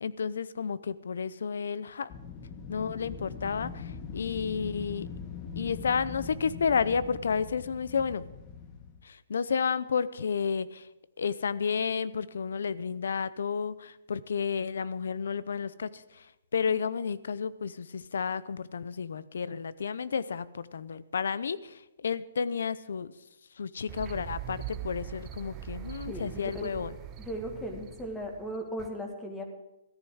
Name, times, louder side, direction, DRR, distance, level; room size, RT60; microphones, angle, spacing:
voice 1, 0.0-2.1 2.7-5.1 5.6-8.2 9.0-10.9 11.2-16.3 16.5-23.1 23.6-26.9, left 6 dB, 80° left, 17 dB, 0.6 m, -31 dB
Wind, 2.1-9.0, left 5 dB, 25° left, 1.4 m, -42 dB
sound 1, 23.9-28.9, right 10 dB, 20° right, 0.9 m, -42 dB
voice 2, 26.1-26.8 27.2-29.4, equal, 10° left, 3 dB, 2.0 m, -37 dB
14.0 x 9.9 x 6.3 m, 0.94 s
hypercardioid pair, 155°, 0 cm